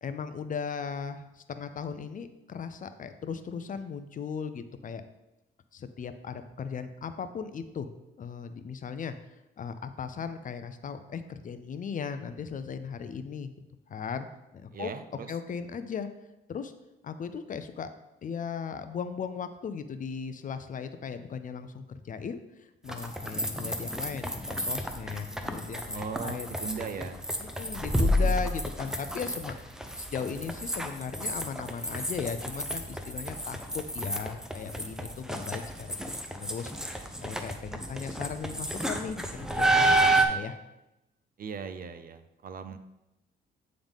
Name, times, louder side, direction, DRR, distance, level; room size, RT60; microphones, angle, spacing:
voice 1, 0.0-5.0 5.7-7.9 8.2-13.5 13.9-14.3 14.5-14.9 15.3-16.1 16.5-16.7 17.0-17.9 18.2-26.6 27.4-29.5 30.0-40.5, left 6 dB, 40° left, 10 dB, 0.5 m, -37 dB
voice 2, 14.7-15.3 25.9-27.3 41.4-42.8, right 6 dB, 45° right, 11 dB, 0.5 m, -38 dB
sound 1, 22.9-40.3, right 1 dB, 5° right, 0.6 m, -30 dB
8.8 x 3.8 x 3.5 m, 0.95 s
cardioid pair, 90°, 20 cm